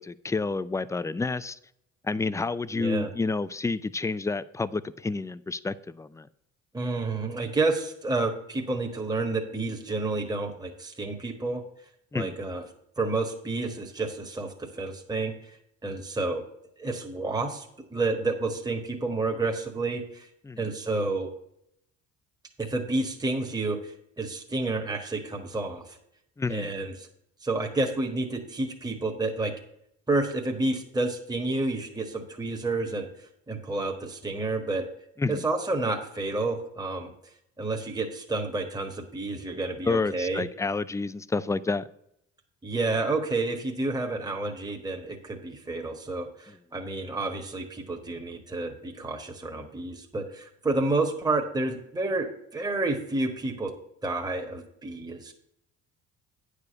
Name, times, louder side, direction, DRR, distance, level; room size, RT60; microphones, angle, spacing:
voice 1, 0.0-1.6 2.1-6.3 12.1-12.3 20.5-20.6 26.4-26.7 35.2-35.4 39.9-41.8, left 3 dB, 10° left, 0.4 m, -29 dB
voice 2, 2.7-3.1 6.7-11.6 12.1-12.6 13.0-15.6 15.8-16.4 16.8-20.3 20.6-21.3 22.6-26.0 26.5-27.1 27.4-29.5 30.1-34.8 35.3-37.1 37.6-40.4 42.6-53.7 54.0-55.3, right 2 dB, 10° right, 1.5 m, -30 dB
9.3 x 5.0 x 6.7 m
hypercardioid pair, 60°, 38 cm